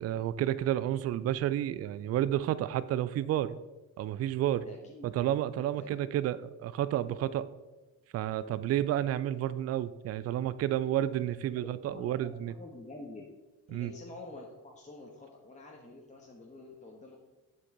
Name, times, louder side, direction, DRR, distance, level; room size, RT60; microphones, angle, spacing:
voice 1, 0.0-3.6 4.0-4.7 5.0-7.5 8.1-12.5 13.7-13.9, right 12 dB, 35° right, 16 dB, 0.4 m, -31 dB
voice 2, 4.6-5.0 5.7-6.1 11.5-12.3 12.6-13.2 13.7-17.2, left 2 dB, 15° left, -1 dB, 1.2 m, -48 dB
8.5 x 7.1 x 3.7 m, 1.1 s
figure-of-eight pair, 40°, 46 cm